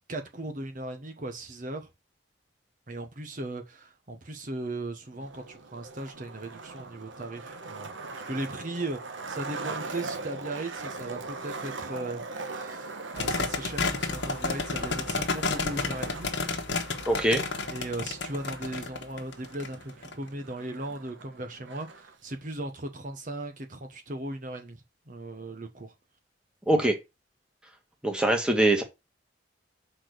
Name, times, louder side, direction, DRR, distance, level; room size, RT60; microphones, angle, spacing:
voice 1, 0.1-1.9 2.9-7.9 8.3-12.2 12.5-16.3 17.7-25.9 26.7-26.9, right 2 dB, 40° right, 1.0 m, -37 dB
Skateboard, 5.1-22.1, right 3 dB, 80° right, 1.2 m, -41 dB
sound 1, 13.2-20.1, left 3 dB, 60° left, 1.3 m, -31 dB
voice 2, 17.1-17.4 26.7-27.0 28.0-28.8, right 1 dB, 5° right, 1.5 m, -23 dB
6.0 x 4.4 x 6.5 m
head